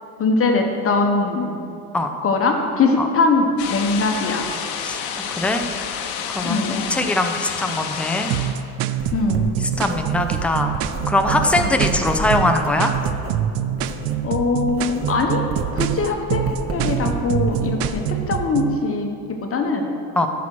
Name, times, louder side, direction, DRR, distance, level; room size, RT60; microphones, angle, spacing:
voice 1, 0.2-1.5 2.2-4.5 6.4-6.8 9.1-9.5 11.6-11.8 14.2-15.4 15.7-19.1 19.4-19.9, left 3 dB, 30° left, 3 dB, 1.2 m, -21 dB
sound 1, 3.6-8.6, left 7 dB, 60° left, 1.0 m, -29 dB
voice 2, 6.3-8.3 9.8-10.8 11.1-12.9 20.2-20.3, left 2 dB, 5° left, 4 dB, 0.6 m, -21 dB
sound 2, 8.3-18.8, right 10 dB, 70° right, 0.6 m, -25 dB
Writing, 9.0-14.3 14.5-18.3, right 3 dB, 30° right, 1.1 m, -31 dB
10.0 x 6.1 x 4.6 m, 2.5 s
supercardioid pair, 100°, 43 cm